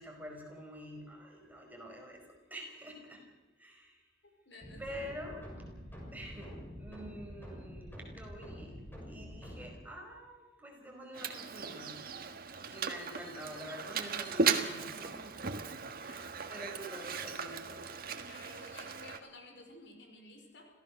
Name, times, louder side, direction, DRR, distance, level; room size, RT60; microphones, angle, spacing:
voice 1, 0.0-2.2 2.5-3.2 3.6-4.0 4.8-5.6 6.1-8.8 9.0-12.0 12.7-15.4 16.0-17.8, equal, 10° right, 0 dB, 5.1 m, -47 dB
voice 2, 4.5-5.0 16.0-16.3 18.3-20.7, left 2 dB, 65° left, 2 dB, 5.3 m, -53 dB
sound 1, 4.6-9.7, equal, 10° left, 6.9 m, -47 dB
Mechanisms, 11.1-19.2, right 5 dB, 55° right, 1.6 m, -37 dB
26.5 x 16.0 x 6.5 m, 1.1 s
head